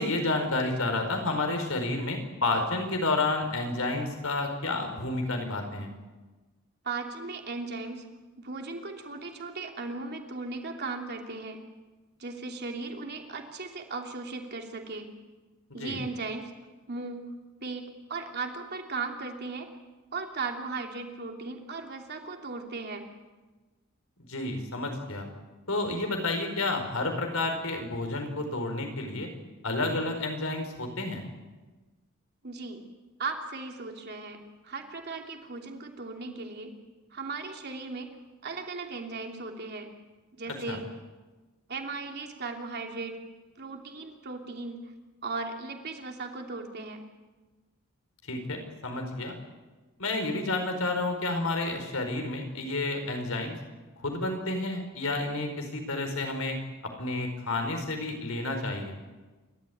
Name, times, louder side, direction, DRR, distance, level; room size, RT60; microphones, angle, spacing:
voice 1, 0.0-5.9 15.8-16.0 24.3-25.3 25.7-29.3 29.6-31.2 40.7-40.8 48.3-49.3 50.0-53.5 54.0-56.6 56.8-59.0, left 2 dB, 80° left, 4 dB, 4.8 m, -30 dB
voice 2, 6.8-8.1 8.4-11.6 12.2-15.1 15.7-16.5 16.9-17.3 17.6-19.7 20.1-23.1 32.4-32.8 33.2-36.8 37.1-38.1 38.4-39.9 40.4-40.8 41.7-43.2 43.6-44.9 45.2-47.0, right 3 dB, 50° right, 3 dB, 3.0 m, -37 dB
28.5 x 13.0 x 9.4 m, 1.2 s
head